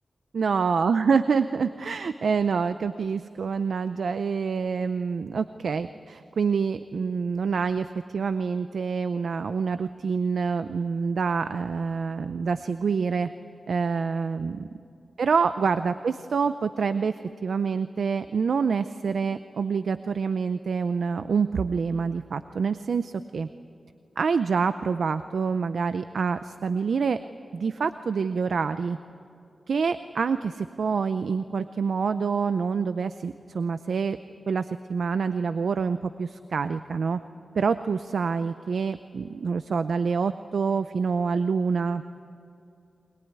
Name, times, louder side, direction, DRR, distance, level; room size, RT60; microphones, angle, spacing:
voice 1, 0.3-13.3 13.7-14.7 15.2-23.5 24.2-27.2 27.5-29.0 29.7-34.2 34.5-37.2 37.5-42.0, right 5 dB, 80° right, 11 dB, 0.5 m, -26 dB
21.5 x 21.0 x 9.6 m, 2.6 s
wide cardioid pair, 120°, 0 cm